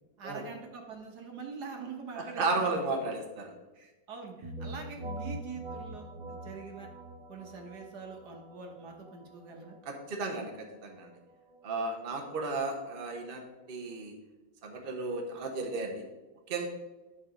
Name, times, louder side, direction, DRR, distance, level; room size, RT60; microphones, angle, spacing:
voice 1, 0.2-3.1 3.7-6.9 7.3-9.8, right 5 dB, 65° right, 2 dB, 1.7 m, -44 dB
voice 2, 2.4-3.5 10.1-10.5 10.8-11.1 11.6-13.4 13.7-14.1 14.6-16.0 16.5-16.7, right 3 dB, 35° right, 2 dB, 1.0 m, -33 dB
sound 1, 4.4-14.0, right 1 dB, 80° right, 1.8 m, -45 dB
10.5 x 4.1 x 5.0 m, 1.1 s
omnidirectional pair, 2.0 m